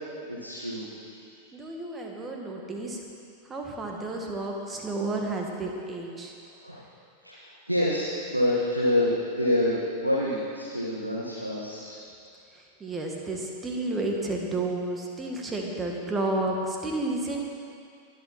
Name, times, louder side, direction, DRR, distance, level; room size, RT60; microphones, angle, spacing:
voice 1, 0.3-1.5 6.6-6.8 7.2-11.9, left 1 dB, 85° right, -6 dB, 1.6 m, -27 dB
voice 2, 1.5-3.0 3.5-6.3 12.5-17.4, right 2 dB, 15° right, 0 dB, 1.9 m, -31 dB
22.0 x 7.9 x 4.3 m, 2.4 s
figure-of-eight pair, 90°, 0 cm